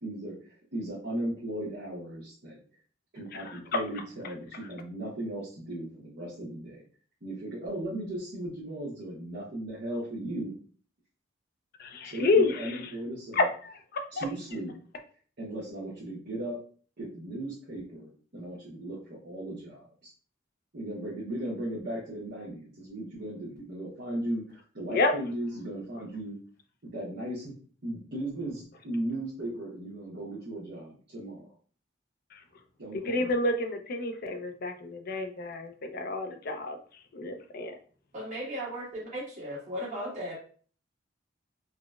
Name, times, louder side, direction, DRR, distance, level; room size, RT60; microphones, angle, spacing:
voice 1, 0.0-2.6 3.1-6.8 7.2-10.5 12.0-13.4 14.1-14.7 15.4-16.6 17.0-20.1 20.7-26.4 26.8-27.5 27.8-31.5 32.8-33.3, right 1 dB, 60° right, -8 dB, 0.8 m, -37 dB
voice 2, 3.5-3.8 11.8-12.8 13.3-14.3 24.9-25.1 32.3-32.4 33.1-36.8 37.1-37.7, left 2 dB, 50° left, 6 dB, 0.4 m, -29 dB
voice 3, 38.1-40.4, equal, 40° right, -6 dB, 1.4 m, -36 dB
3.7 x 2.0 x 2.3 m, 0.43 s
head